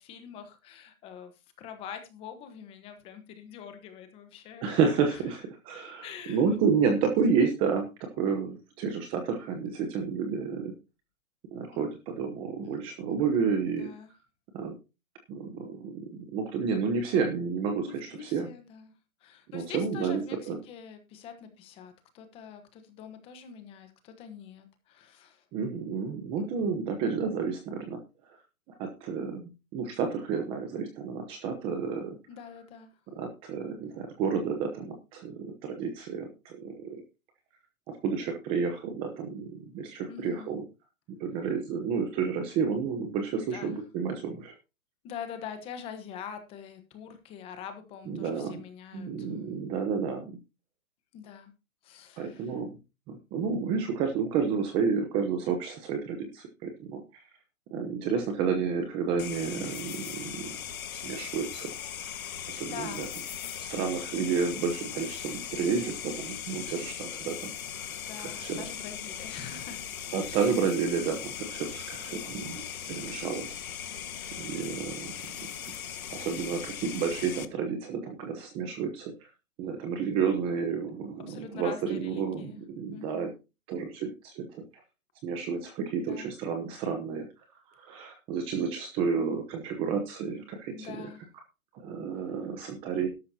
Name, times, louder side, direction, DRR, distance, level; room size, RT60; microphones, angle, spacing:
voice 1, 0.0-1.3 1.6-5.2 6.0-6.4 11.7-11.8 12.6-12.8 13.6-14.1 17.8-18.9 19.2-25.4 32.3-32.9 40.1-40.5 43.4-43.8 45.0-49.5 51.1-51.5 51.8-52.6 62.3-63.1 63.6-63.8 68.0-69.8 70.2-70.5 81.3-82.6 82.9-83.3 86.0-86.3 90.7-91.3, left 7 dB, 15° left, 8 dB, 1.2 m, -44 dB
voice 2, 4.6-10.7 11.5-13.9 14.5-14.7 15.3-18.5 19.5-20.2 20.5-20.6 25.5-28.0 28.8-32.2 33.2-37.0 38.0-40.6 41.2-44.5 48.1-48.6 48.9-50.3 52.2-52.8 53.1-57.0 57.7-60.5 61.0-61.7 62.5-63.1 63.4-67.5 68.2-68.6 70.1-73.6 74.4-75.1 76.1-79.1 79.6-83.3 83.7-84.6 85.2-87.3 87.8-91.1 91.7-93.1, right 6 dB, 10° right, 5 dB, 0.9 m, -30 dB
sound 1, 59.2-77.4, left 9 dB, 70° left, 1.7 m, -39 dB
12.5 x 12.0 x 2.8 m, 0.28 s
hypercardioid pair, 165°, 43 cm